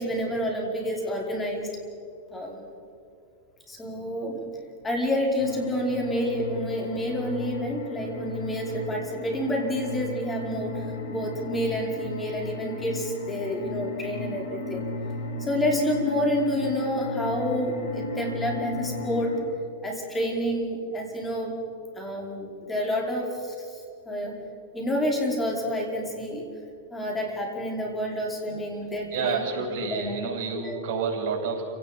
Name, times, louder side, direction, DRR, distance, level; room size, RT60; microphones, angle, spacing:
voice 1, 0.0-1.7 2.3-2.7 3.7-4.5 4.8-10.8 11.1-14.9 15.4-19.4 19.8-21.6 21.9-24.3 24.7-26.4 26.9-29.4 29.8-30.2 30.5-30.8, equal, 15° left, -1 dB, 5.0 m, -29 dB
sound 1, 5.4-19.4, left 2 dB, 70° left, 4.8 m, -35 dB
voice 2, 29.1-31.6, right 5 dB, 55° right, 0 dB, 7.1 m, -29 dB
29.5 x 18.0 x 5.3 m, 2.5 s
hypercardioid pair, 125°, 0 cm